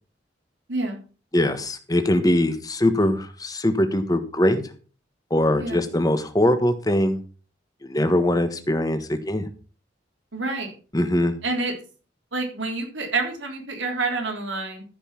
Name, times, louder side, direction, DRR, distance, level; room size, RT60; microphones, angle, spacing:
voice 1, 0.7-1.0 5.6-5.8 10.3-10.7 11.4-11.7 12.3-14.8, right 3 dB, 85° right, 2 dB, 3.7 m, -28 dB
voice 2, 1.3-4.6 5.3-7.2 7.8-9.5 10.9-11.3, left 1 dB, 20° left, 8 dB, 1.4 m, -22 dB
14.5 x 5.5 x 5.8 m, 0.38 s
head